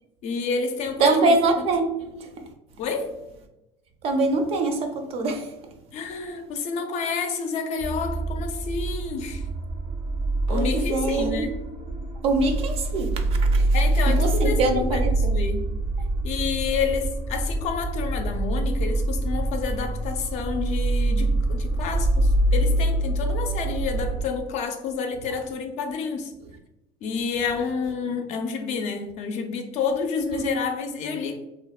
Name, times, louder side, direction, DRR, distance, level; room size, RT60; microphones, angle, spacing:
voice 1, 0.2-1.7 2.8-3.1 5.9-9.4 10.5-11.6 13.7-14.6 14.9-15.0 15.3-15.7 16.2-26.3 27.0-31.4, left 5 dB, 50° left, 0.4 m, -29 dB
voice 2, 1.0-2.5 4.0-5.6 10.5-11.5 12.2-13.8 14.0-15.4, right 2 dB, 45° right, 0.4 m, -24 dB
sound 1, 7.8-24.2, right 2 dB, 85° right, 0.9 m, -25 dB
2.8 x 2.0 x 2.3 m
cardioid pair, 135°, 15 cm